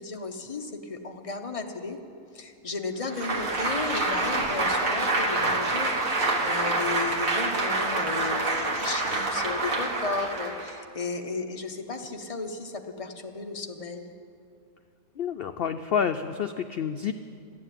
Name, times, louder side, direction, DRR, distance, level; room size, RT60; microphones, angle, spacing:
voice 1, 0.0-2.0 2.3-6.1 6.4-14.1, left 3 dB, 25° left, 4 dB, 0.9 m, -34 dB
Applause, 3.1-10.8, right 2 dB, 65° right, 1.8 m, -27 dB
voice 2, 15.2-17.1, left 7 dB, 90° left, 8 dB, 0.5 m, -28 dB
13.5 x 11.0 x 9.0 m, 2.4 s
omnidirectional pair, 1.6 m